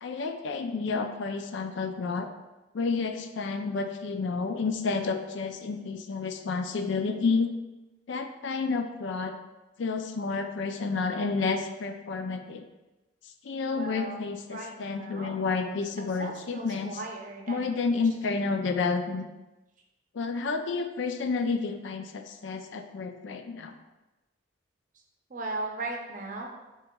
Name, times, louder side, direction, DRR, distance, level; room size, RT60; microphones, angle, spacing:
voice 1, 0.0-2.3 2.7-7.5 8.1-9.3 9.8-12.7 13.4-17.0 17.5-19.2 20.1-23.7, left 4 dB, 70° left, 6 dB, 0.4 m, -30 dB
voice 2, 13.7-15.4 16.2-18.4 25.3-26.5, right 2 dB, 40° right, 1 dB, 0.6 m, -38 dB
7.1 x 3.0 x 2.3 m, 1.1 s
head